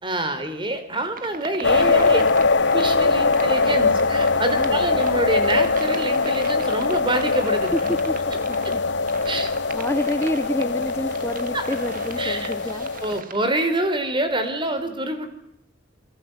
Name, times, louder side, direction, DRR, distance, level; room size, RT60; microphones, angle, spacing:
voice 1, 0.0-2.2 2.7-7.9 8.6-8.7 9.3-9.5 11.5-11.6 12.2-12.5 13.0-15.3, right 1 dB, 25° right, 9 dB, 4.5 m, -26 dB
sound 1, 1.1-13.5, right 5 dB, 50° right, 2.1 m, -40 dB
sound 2, 1.6-13.2, left 4 dB, 65° left, 1.1 m, -22 dB
voice 2, 4.5-5.0 7.7-8.2 8.4-8.8 9.3-12.9, left 1 dB, 15° left, 10 dB, 1.0 m, -28 dB
29.0 x 23.5 x 8.2 m, 0.75 s
head